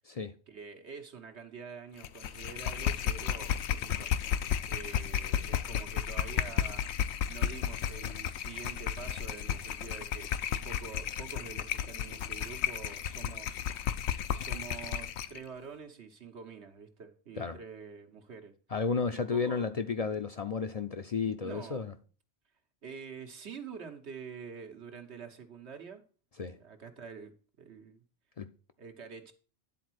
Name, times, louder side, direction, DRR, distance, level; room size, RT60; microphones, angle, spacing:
voice 1, 0.5-4.3 4.7-6.9 7.3-13.6 14.3-18.5 19.1-19.7 21.4-21.8 22.8-26.0 26.5-27.3 27.6-28.0 28.8-29.3, right 6 dB, 85° right, 1.5 m, -46 dB
sound 1, 2.0-15.4, left 9 dB, 85° left, 0.9 m, -33 dB
voice 2, 18.7-21.9 26.4-26.6 28.4-28.5, left 5 dB, 45° left, 0.5 m, -32 dB
10.0 x 4.2 x 6.3 m
omnidirectional pair, 1.1 m